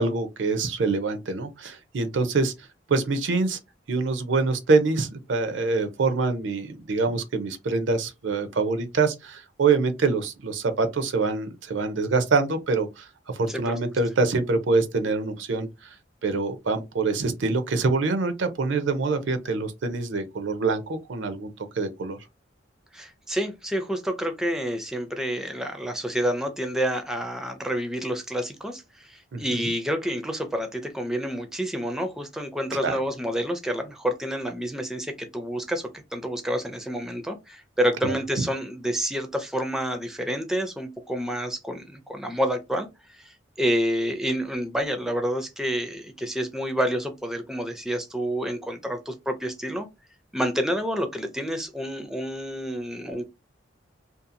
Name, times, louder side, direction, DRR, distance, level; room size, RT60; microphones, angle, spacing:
voice 1, 0.0-2.5 2.9-3.6 3.9-13.1 13.3-15.9 16.2-22.2 29.3-29.7 32.8-33.0 38.0-38.5, right 3 dB, 75° right, 0.5 m, -25 dB
voice 2, 13.5-13.8 22.9-49.9 50.3-53.3, equal, 5° right, 0.4 m, -29 dB
2.7 x 2.3 x 2.5 m
head